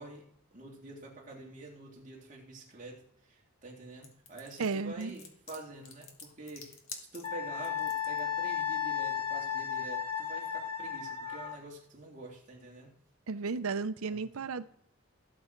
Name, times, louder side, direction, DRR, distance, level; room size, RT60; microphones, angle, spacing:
voice 1, 0.0-6.8 7.1-12.9 14.0-14.5, right 2 dB, 35° right, -2 dB, 2.5 m, -47 dB
sound 1, 4.0-8.2, left 5 dB, 65° left, 1.9 m, -48 dB
voice 2, 4.6-5.1 13.3-14.7, right 4 dB, 80° right, 13 dB, 0.6 m, -34 dB
Wind instrument woodwind instrument, 7.2-11.6, left 8 dB, 30° left, 2.7 m, -34 dB
16.0 x 7.7 x 4.5 m, 0.72 s
head